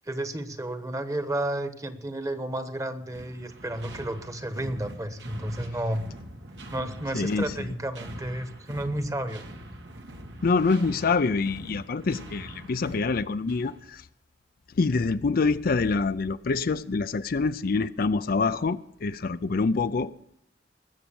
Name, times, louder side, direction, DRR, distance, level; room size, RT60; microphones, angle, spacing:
voice 1, 0.0-6.0 6.7-9.4, right 1 dB, 20° right, 1.2 m, -32 dB
sound 1, 3.1-13.9, right 1 dB, 80° right, 2.0 m, -44 dB
voice 2, 7.1-7.5 10.4-14.0 14.8-20.1, left 4 dB, 55° left, 0.5 m, -26 dB
20.0 x 7.4 x 7.0 m
head